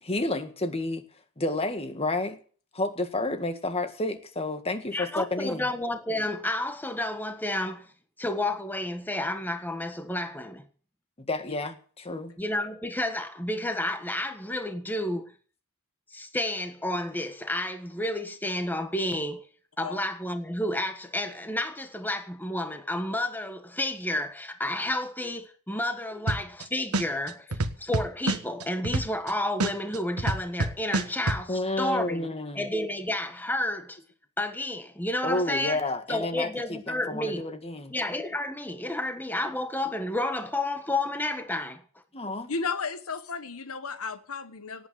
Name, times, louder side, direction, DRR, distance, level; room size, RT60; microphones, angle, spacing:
voice 1, 0.0-1.1 1.4-2.4 2.7-5.7 11.2-12.3 31.5-32.7 35.2-37.9 42.1-42.5, left 2 dB, 25° left, 1.8 m, -30 dB
voice 2, 4.9-7.9 8.2-10.6 12.4-15.3 16.1-19.5 19.8-32.3 32.5-34.0 34.4-35.8 36.1-37.4 37.9-41.8, left 1 dB, 10° left, 1.5 m, -31 dB
sound 1, 26.3-26.6 26.9-29.3 29.6-31.4, right 2 dB, 85° right, 1.4 m, -26 dB
voice 3, 42.5-44.9, left 4 dB, 70° left, 1.1 m, -33 dB
18.0 x 8.8 x 7.7 m
head